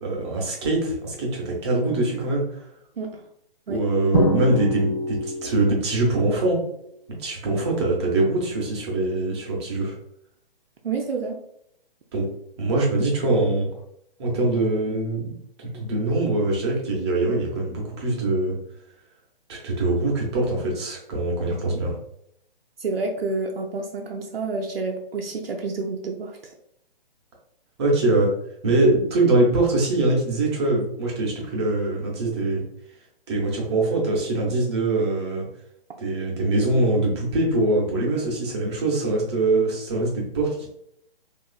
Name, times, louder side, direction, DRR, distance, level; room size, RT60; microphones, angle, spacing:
voice 1, 0.0-2.6 3.7-6.6 7.2-9.9 12.1-12.3 12.6-13.7 14.2-15.3 15.6-18.5 19.5-21.9 27.8-28.3 28.6-32.6 33.3-35.5 36.0-40.7, right 2 dB, 30° right, -2 dB, 0.7 m, -23 dB
Drum, 4.1-5.8, right 1 dB, 30° left, 0.7 m, -24 dB
voice 2, 10.8-11.4 22.8-26.5, right 3 dB, 80° right, 1 dB, 0.5 m, -29 dB
2.9 x 2.4 x 2.3 m, 0.74 s
figure-of-eight pair, 135°, 29 cm